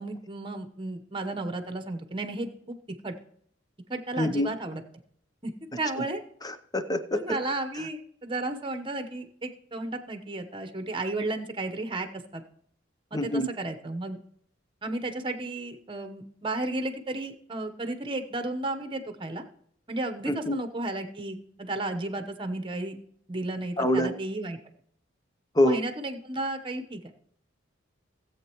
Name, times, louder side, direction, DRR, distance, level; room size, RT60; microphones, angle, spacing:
voice 1, 0.0-2.7 3.0-3.1 3.9-4.8 5.4-5.5 5.8-6.2 7.1-12.1 12.3-12.4 13.1-14.2 14.8-19.4 19.9-23.0 23.3-24.6 25.6-27.1, right 2 dB, 25° right, 8 dB, 1.0 m, -33 dB
voice 2, 4.2-4.5 6.4-7.4 13.1-13.5 20.3-20.6 23.8-24.2 25.5-25.8, left 1 dB, 20° left, 9 dB, 0.7 m, -25 dB
17.5 x 8.0 x 3.0 m, 0.67 s
head